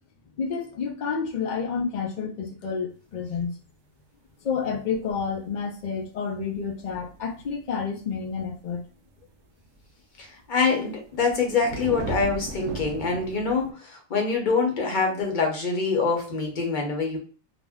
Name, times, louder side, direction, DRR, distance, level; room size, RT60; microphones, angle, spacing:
voice 1, 0.4-3.5 4.4-8.8, left 6 dB, 75° left, 0.4 m, -29 dB
sound 1, 6.8-7.9 8.4-8.7 9.7-9.8 10.9-13.7, right 3 dB, 70° right, 0.8 m, -36 dB
voice 2, 10.2-17.2, left 4 dB, 45° left, 0.8 m, -25 dB
2.6 x 2.1 x 3.4 m
omnidirectional pair, 1.4 m